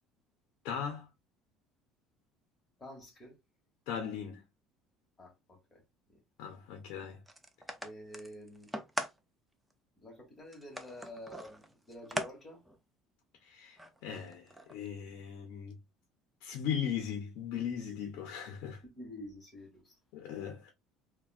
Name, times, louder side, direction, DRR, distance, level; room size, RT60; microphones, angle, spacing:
voice 1, 0.6-1.1 3.9-4.4 6.4-7.2 13.4-15.8 16.4-18.8 20.1-20.7, left 8 dB, 70° left, 0.7 m, -38 dB
voice 2, 2.8-3.4 5.2-5.8 6.1-6.2 7.8-8.7 10.0-12.6 18.8-19.9, equal, 20° left, 1.3 m, -49 dB
sound 1, 7.3-9.2 9.7-9.8 10.5-12.3 12.7-12.8 13.8-14.9, right 1 dB, 5° right, 0.4 m, -41 dB
3.4 x 2.2 x 2.3 m
cardioid pair, 150°, 0 cm